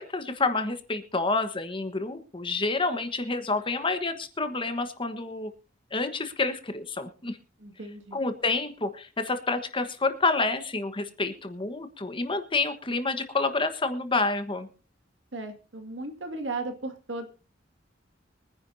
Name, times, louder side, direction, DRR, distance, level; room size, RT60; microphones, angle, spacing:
voice 1, 0.0-5.5 5.9-7.4 8.1-14.7, left 3 dB, 25° left, 9 dB, 1.3 m, -28 dB
voice 2, 7.6-8.2 15.3-17.3, right 2 dB, 70° right, 5 dB, 2.2 m, -36 dB
23.5 x 10.5 x 2.7 m, 0.34 s
head